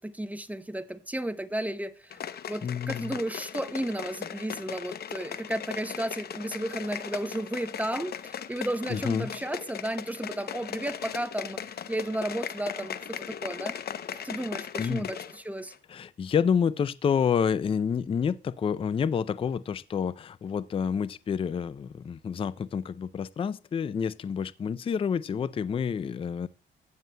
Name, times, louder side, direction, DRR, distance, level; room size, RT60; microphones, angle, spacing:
voice 1, 0.0-2.2 2.5-13.8 14.2-15.7, right 1 dB, 5° right, 0.7 m, -33 dB
sound 1, 2.1-15.4 15.7-15.8, left 8 dB, 50° left, 0.7 m, -38 dB
voice 2, 2.6-3.2 8.9-9.3 14.8-15.1 15.9-26.5, left 7 dB, 30° left, 0.4 m, -28 dB
15.0 x 9.1 x 2.2 m
cardioid pair, 90°, 20 cm